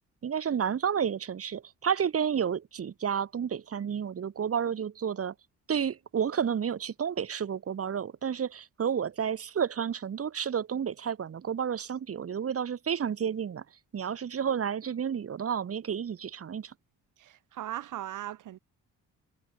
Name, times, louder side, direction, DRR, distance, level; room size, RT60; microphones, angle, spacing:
voice 1, 0.2-5.3 5.7-13.6 13.9-16.7, right 8 dB, 45° right, 7.6 m, -31 dB
voice 2, 17.2-18.6, right 12 dB, 75° right, 5.1 m, -38 dB
cardioid pair, 120°, 31 cm